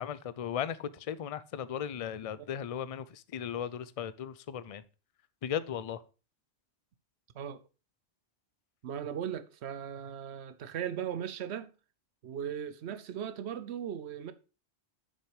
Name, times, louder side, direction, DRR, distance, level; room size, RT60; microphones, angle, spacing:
voice 1, 0.0-4.8 5.4-6.0, left 9 dB, 45° left, 0.5 m, -36 dB
voice 2, 8.8-11.7 12.2-14.3, right 9 dB, 80° right, 1.0 m, -38 dB
6.9 x 6.1 x 4.7 m
omnidirectional pair, 1.1 m